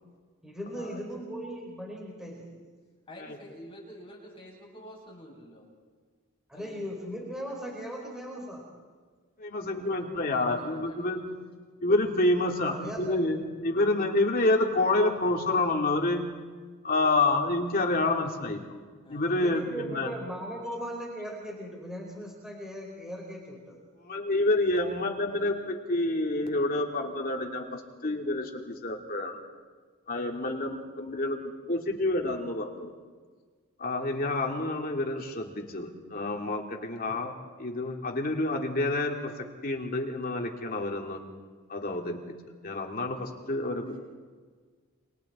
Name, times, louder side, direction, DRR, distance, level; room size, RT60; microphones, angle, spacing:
voice 1, 0.4-2.5 6.5-8.6 12.7-13.4 19.3-23.8, equal, 5° right, -2 dB, 4.4 m, -38 dB
voice 2, 3.1-5.6 6.5-6.9 9.7-11.4 19.0-19.2 25.3-25.5 43.8-44.0, equal, 25° left, -3 dB, 8.0 m, -48 dB
voice 3, 9.4-11.2 11.8-16.2 16.8-18.6 19.1-20.1 24.0-29.4 30.1-31.4 31.7-32.9 33.8-37.3 37.6-39.3 39.6-41.2 41.7-42.2 42.6-43.8, left 2 dB, 40° left, 1 dB, 2.8 m, -28 dB
29.0 x 26.5 x 4.4 m, 1.5 s
head